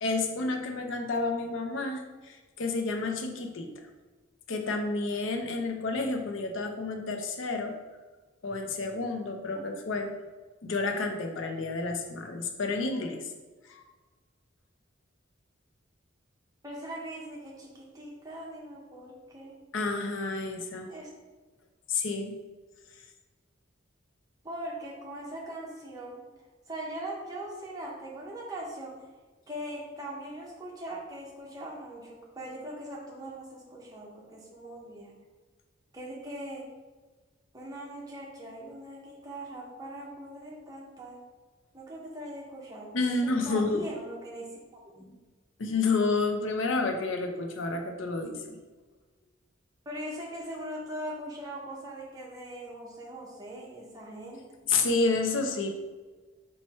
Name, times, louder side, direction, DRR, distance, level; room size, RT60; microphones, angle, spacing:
voice 1, 0.0-3.7 4.5-7.8 8.4-10.2 10.6-13.2 13.7-13.8 19.7-20.9 21.9-22.4 42.9-43.9 45.6-48.6 54.7-55.7, left 3 dB, 75° left, 4 dB, 0.5 m, -30 dB
voice 2, 16.6-19.6 20.9-21.1 24.4-26.2 26.7-29.1 29.5-35.1 35.9-36.7 37.5-41.2 41.7-44.6 44.9-45.1 49.9-54.4, right 1 dB, 20° right, -3 dB, 0.7 m, -41 dB
4.3 x 2.2 x 4.3 m, 1.3 s
head